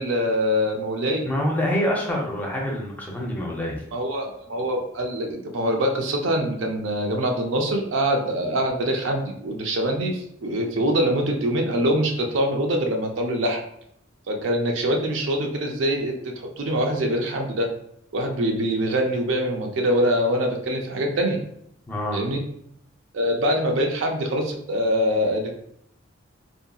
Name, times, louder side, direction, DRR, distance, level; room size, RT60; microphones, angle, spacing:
voice 1, 0.0-1.3 3.9-13.6 14.3-17.7 18.1-21.4 22.1-22.4 23.1-25.5, equal, 70° right, 2 dB, 0.5 m, -24 dB
voice 2, 1.2-3.8 21.9-22.2, left 1 dB, 10° left, -2 dB, 0.5 m, -26 dB
2.7 x 2.6 x 2.3 m, 0.70 s
head